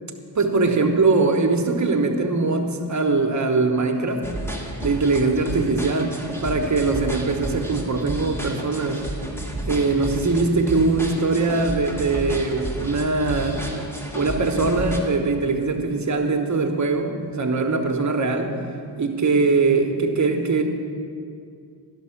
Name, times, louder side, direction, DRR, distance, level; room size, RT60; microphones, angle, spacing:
voice 1, 0.3-4.2 4.8-9.1 9.7-13.6 14.1-18.6 19.0-20.6, right 3 dB, 40° right, 4 dB, 1.1 m, -21 dB
sound 1, 4.2-15.0, right 1 dB, 5° left, 1.5 m, -32 dB
12.0 x 5.8 x 5.8 m, 2.4 s
cardioid pair, 60°, 43 cm